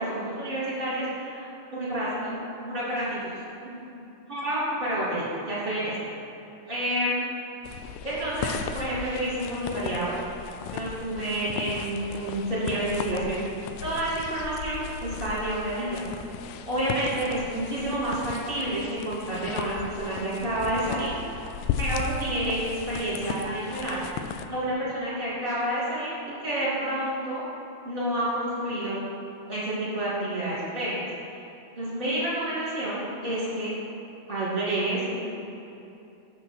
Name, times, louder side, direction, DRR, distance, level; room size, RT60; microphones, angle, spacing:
voice 1, 0.0-1.5 1.7-2.4 2.6-3.3 3.9-4.0 4.3-5.9 6.7-7.2 8.0-10.2 10.7-13.4 13.8-16.0 16.7-21.5 21.7-24.0 24.5-26.1 26.4-27.4 27.8-29.0 29.5-31.4 31.7-33.7 34.3-35.2, right 1 dB, 20° right, -9 dB, 1.6 m, -29 dB
sound 1, 7.6-24.5, left 7 dB, 90° left, 2.7 m, -36 dB
9.0 x 7.0 x 5.9 m, 2.9 s
omnidirectional pair, 4.7 m